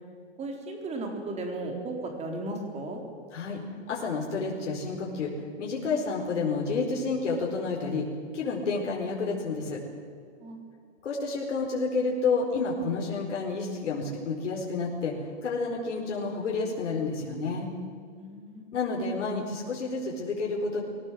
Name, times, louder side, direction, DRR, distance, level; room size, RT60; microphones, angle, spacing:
voice 1, 0.4-3.0 10.4-10.6 18.2-18.7, right 2 dB, 20° right, 3 dB, 4.1 m, -35 dB
voice 2, 3.9-5.3 5.6-8.1 8.3-9.8 11.0-15.1 15.4-17.7 18.7-20.8, left 4 dB, 85° left, -2 dB, 4.8 m, -30 dB
23.0 x 18.0 x 7.7 m, 2.1 s
hypercardioid pair, 150°, 35 cm